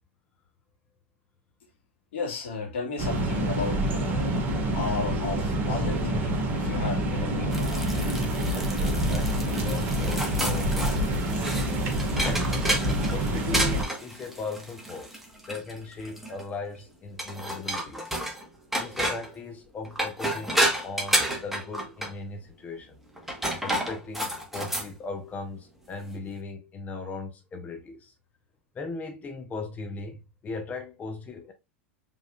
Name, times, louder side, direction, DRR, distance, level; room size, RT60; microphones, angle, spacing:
voice 1, 2.1-4.4 4.8-7.9, left 4 dB, 70° left, 1.8 m, -34 dB
sound 1, 3.0-13.8, right 1 dB, 30° right, 2.0 m, -27 dB
sound 2, 7.5-16.4 17.2-18.4 18.7-19.3 19.8-22.1 23.2-24.9, right 1 dB, 5° right, 1.3 m, -31 dB
voice 2, 8.5-11.5 12.2-12.6 13.1-15.2 15.5-18.1 18.7-23.0 23.6-28.1 28.7-31.5, left 3 dB, 25° left, 0.8 m, -38 dB
4.9 x 3.6 x 2.4 m
hypercardioid pair, 95°, 7 cm